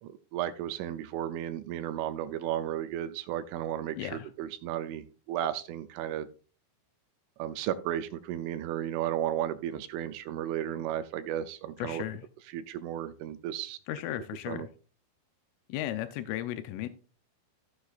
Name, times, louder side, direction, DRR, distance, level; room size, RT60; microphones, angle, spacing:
voice 1, 0.0-6.3 7.4-12.0 12.5-13.8 14.5-14.7, right 11 dB, 80° right, 9 dB, 3.1 m, -34 dB
voice 2, 4.0-4.3 11.8-12.3 13.9-14.7 15.7-16.9, left 13 dB, 80° left, 9 dB, 3.2 m, -35 dB
15.5 x 7.3 x 2.5 m, 0.37 s
omnidirectional pair, 5.8 m